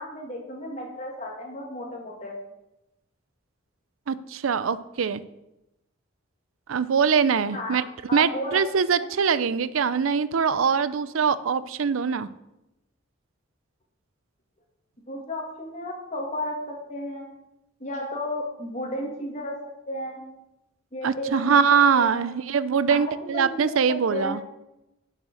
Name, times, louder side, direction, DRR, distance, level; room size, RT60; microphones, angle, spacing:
voice 1, 0.0-2.4 7.5-7.8 8.1-8.6 15.1-17.3 17.8-19.5 19.9-20.2 20.9-21.6 21.9-22.3 22.9-24.3, left 1 dB, 35° left, -1 dB, 2.6 m, -33 dB
voice 2, 4.1-5.2 6.7-7.9 8.1-12.3 21.0-24.4, right 6 dB, 85° right, 15 dB, 0.5 m, -23 dB
9.0 x 7.4 x 6.4 m, 0.93 s
head